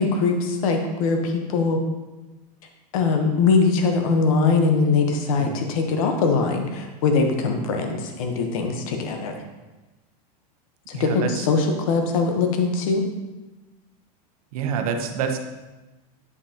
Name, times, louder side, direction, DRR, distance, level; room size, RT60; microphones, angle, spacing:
voice 1, 0.0-1.8 2.9-9.3 10.9-13.0, left 4 dB, 55° left, 4 dB, 0.9 m, -22 dB
voice 2, 10.9-11.5 14.5-15.4, right 7 dB, 65° right, 5 dB, 0.8 m, -27 dB
9.6 x 5.2 x 2.8 m, 1.1 s
supercardioid pair, 180°, 20 cm